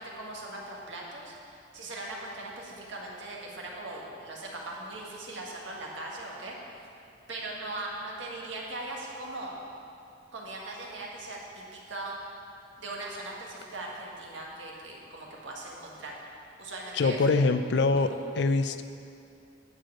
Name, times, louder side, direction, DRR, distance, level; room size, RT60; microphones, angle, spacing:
voice 1, 0.0-6.6 7.3-9.6 10.3-12.2 12.8-16.1 16.6-17.2 18.0-18.1, right 2 dB, 75° right, -2 dB, 1.7 m, -40 dB
voice 2, 16.9-18.8, left 3 dB, 60° left, 10 dB, 0.4 m, -24 dB
10.0 x 4.8 x 8.0 m, 2.6 s
head